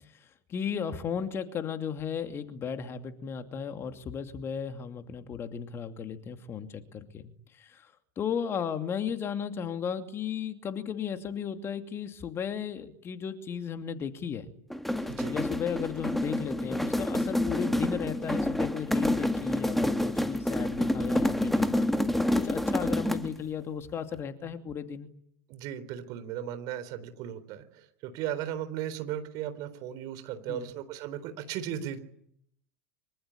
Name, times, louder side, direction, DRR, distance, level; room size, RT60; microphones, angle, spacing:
voice 1, 0.5-7.9 8.2-14.5 15.3-21.9 22.3-25.1 30.5-30.7, left 7 dB, 30° left, 8 dB, 2.6 m, -35 dB
sound 1, 14.7-23.4, left 1 dB, ahead, 1.9 m, -28 dB
voice 2, 25.5-32.0, right 10 dB, 45° right, 11 dB, 3.9 m, -36 dB
25.0 x 24.5 x 8.6 m, 0.71 s
figure-of-eight pair, 80°, 8 cm